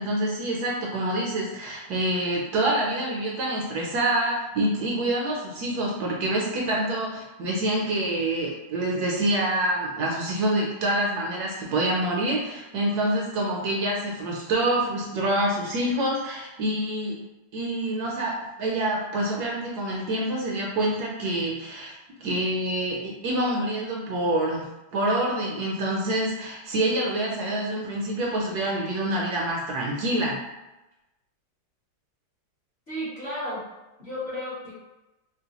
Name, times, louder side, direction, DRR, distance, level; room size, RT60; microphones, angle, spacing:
voice 1, 0.0-17.2 17.5-21.9 22.2-24.7 24.9-30.4, right 1 dB, 70° right, -2 dB, 1.0 m, -26 dB
voice 2, 32.9-33.7 34.0-34.7, equal, 45° left, -9 dB, 0.9 m, -33 dB
3.7 x 2.1 x 2.8 m, 0.99 s
omnidirectional pair, 2.0 m